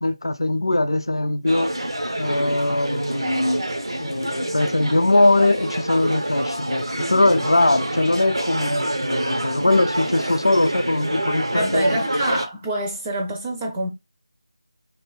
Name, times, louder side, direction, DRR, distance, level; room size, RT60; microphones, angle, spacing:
voice 1, 0.0-1.7 2.2-3.6 4.0-12.0, left 2 dB, 65° left, 0.4 m, -21 dB
sound 1, 1.5-12.5, right 1 dB, 70° right, 0.6 m, -27 dB
voice 2, 11.5-13.9, right 1 dB, 10° right, 0.4 m, -25 dB
2.7 x 2.3 x 3.1 m
figure-of-eight pair, 165°, 3 cm